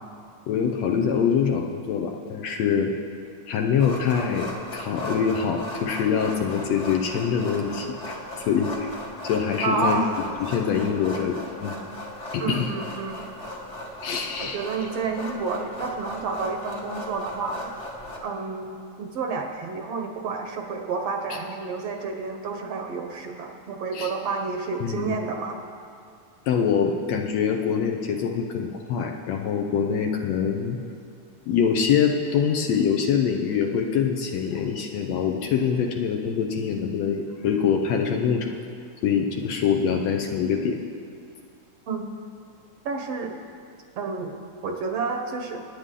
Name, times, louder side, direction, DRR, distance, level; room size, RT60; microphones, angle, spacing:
voice 1, 0.5-2.9 3.5-8.2 8.5-8.9 9.2-10.0 10.4-11.8 12.3-12.7 14.0-14.6 23.9-24.1 24.8-25.2 26.5-30.8 31.5-38.5 39.0-40.8, left 7 dB, 70° left, 3 dB, 1.8 m, -24 dB
sound 1, 3.8-18.2, left 1 dB, 35° left, 1.3 m, -37 dB
voice 2, 9.6-10.2 12.4-13.3 14.4-17.7 18.2-25.6 41.9-42.1 42.9-43.4 44.0-45.7, right 4 dB, 65° right, 3 dB, 1.8 m, -30 dB
25.0 x 9.8 x 3.8 m, 2.4 s
omnidirectional pair, 3.4 m